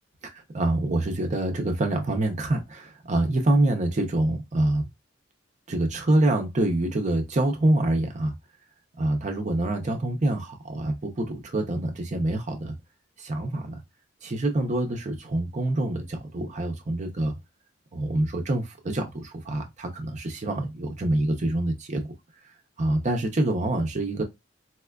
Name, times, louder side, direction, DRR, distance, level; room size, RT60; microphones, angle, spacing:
voice 1, 0.2-4.9 5.7-8.3 9.0-12.8 13.2-13.8 14.2-17.4 17.9-22.1 22.8-24.2, right 1 dB, 40° right, 0.5 m, -26 dB
4.2 x 2.3 x 2.2 m
head